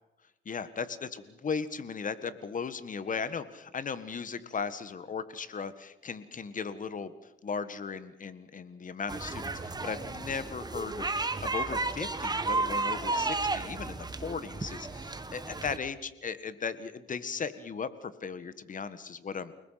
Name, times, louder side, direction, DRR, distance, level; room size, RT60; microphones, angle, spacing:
voice 1, 0.5-11.1 11.4-19.5, left 5 dB, 40° left, 13 dB, 1.7 m, -37 dB
sound 1, 9.1-15.8, right 3 dB, 20° right, 1.8 m, -33 dB
29.0 x 20.0 x 5.9 m, 0.93 s
cardioid pair, 90°, 20 cm